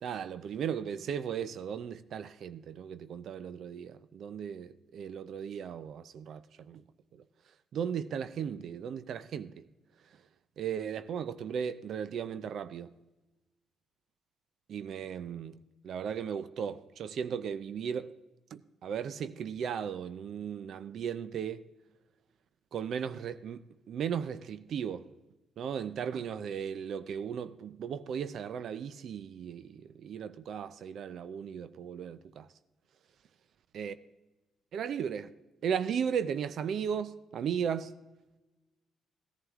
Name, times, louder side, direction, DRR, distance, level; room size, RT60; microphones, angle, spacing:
voice 1, 0.0-6.4 6.7-6.8 7.7-9.6 10.6-12.9 14.7-15.6 15.8-18.1 18.5-21.7 22.7-25.1 25.6-32.5 33.8-33.9 34.7-35.3 35.6-37.9, right 7 dB, 65° right, 0.5 m, -36 dB
16.0 x 11.0 x 3.6 m
cardioid pair, 90°, 0 cm